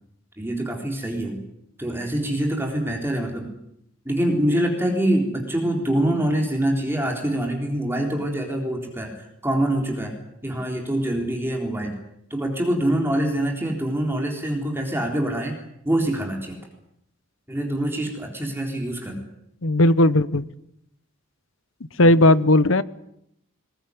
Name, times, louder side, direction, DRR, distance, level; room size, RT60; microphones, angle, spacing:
voice 1, 0.4-1.4 1.8-3.5 4.1-10.1 10.4-11.9 12.3-15.6 15.9-16.6 17.5-19.3 22.0-22.4, right 1 dB, 10° right, 2 dB, 3.8 m, -25 dB
voice 2, 19.6-20.4 22.0-22.8, left 1 dB, 75° left, 15 dB, 1.0 m, -16 dB
22.0 x 20.5 x 9.7 m, 0.77 s
head